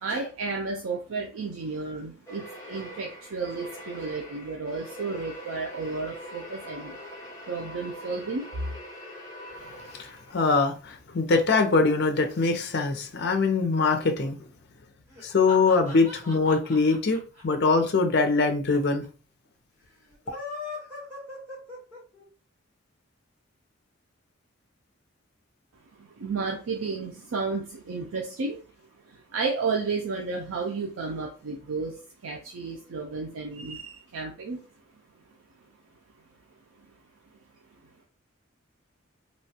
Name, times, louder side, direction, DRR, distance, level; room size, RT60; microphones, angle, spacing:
voice 1, 0.0-7.0 7.5-8.7 25.9-28.6 29.0-34.6, right 4 dB, 85° right, 0.5 m, -32 dB
sound 1, 2.3-10.5, equal, 15° left, 0.7 m, -43 dB
voice 2, 10.0-14.4 15.2-19.0, left 4 dB, 50° left, 0.5 m, -23 dB
sound 2, 15.1-18.4 18.7-18.8 19.0-19.1 20.1-22.2, left 3 dB, 10° right, 1.1 m, -40 dB
3.0 x 2.2 x 2.7 m
head